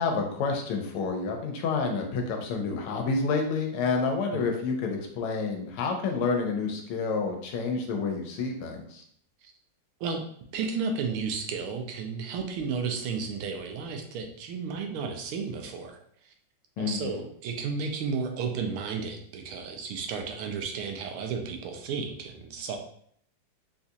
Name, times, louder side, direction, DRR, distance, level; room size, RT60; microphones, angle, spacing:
voice 1, 0.0-9.0 16.8-17.2, left 4 dB, 85° left, 3 dB, 1.5 m, -29 dB
voice 2, 10.5-16.0 16.8-22.8, right 5 dB, 80° right, 3 dB, 1.5 m, -33 dB
4.0 x 2.7 x 2.4 m, 0.65 s
omnidirectional pair, 2.4 m